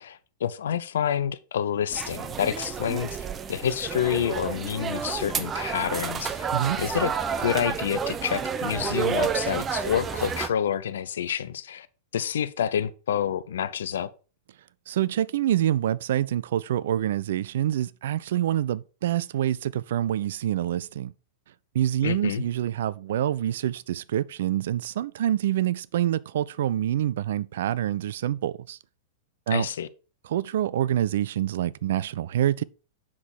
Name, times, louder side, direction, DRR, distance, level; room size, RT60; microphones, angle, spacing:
voice 1, 0.0-3.2 3.5-6.5 6.8-7.1 7.4-11.9 12.1-14.1 22.0-22.4 29.5-29.9, left 9 dB, 65° left, 0.6 m, -28 dB
sound 1, 1.9-10.5, right 6 dB, 25° right, 0.8 m, -30 dB
voice 2, 14.9-21.1 21.7-28.8 29.5-29.7 30.2-32.6, right 11 dB, 60° right, 0.4 m, -26 dB
7.4 x 6.0 x 4.6 m
figure-of-eight pair, 100°, 0 cm